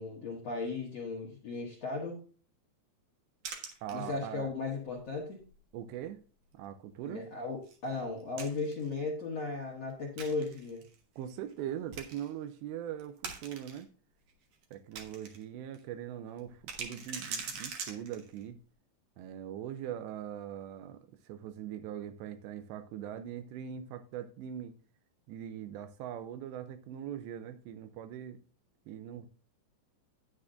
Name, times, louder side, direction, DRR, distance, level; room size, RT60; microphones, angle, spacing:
voice 1, 0.0-2.2 3.9-5.4 7.0-10.8, left 3 dB, 55° left, 1.8 m, -36 dB
sound 1, 3.4-4.4 4.9-5.0 5.4-5.6 6.0-6.1 7.7-8.9 10.2-10.9 11.5-11.6 11.9-12.3 13.0-13.8 14.3-15.4 15.7-15.8 16.4-18.4, right 5 dB, 60° right, 2.2 m, -42 dB
voice 2, 3.8-4.5 5.7-6.2 6.5-7.3 11.2-13.9 14.7-18.6 19.2-24.8 25.3-28.4 28.9-29.3, right 10 dB, 80° right, 2.8 m, -41 dB
10.0 x 9.7 x 2.5 m
omnidirectional pair, 5.3 m